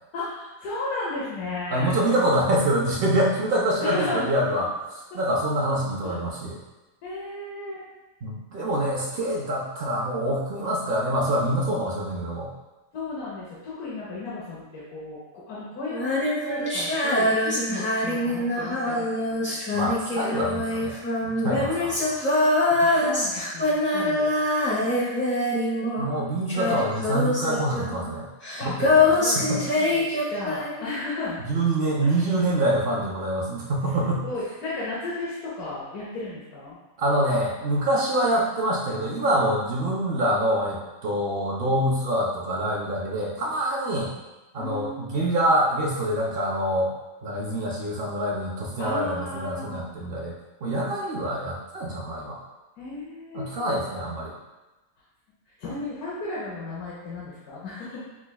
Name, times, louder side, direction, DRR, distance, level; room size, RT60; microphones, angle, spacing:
voice 1, 0.1-1.9 3.8-4.2 6.0-6.2 7.0-7.8 12.9-19.6 22.8-24.4 24.7-25.6 28.6-28.7 29.1-31.4 32.0-32.3 34.0-36.8 44.6-45.2 48.8-49.9 52.8-53.8 55.6-58.0, left 2 dB, 80° left, -7 dB, 1.3 m, -34 dB
voice 2, 1.7-4.7 5.1-6.6 8.2-12.5 19.7-21.0 21.2-22.2 26.0-28.3 28.6-29.6 31.5-34.3 37.0-44.1 44.5-46.9 47.2-50.4 50.6-52.4 53.3-54.3, right 1 dB, 65° right, -3 dB, 0.5 m, -25 dB
Female singing, 15.9-26.2 26.5-30.9, left 2 dB, 15° left, 0.5 m, -24 dB
5.8 x 2.2 x 2.2 m, 1.1 s
omnidirectional pair, 1.5 m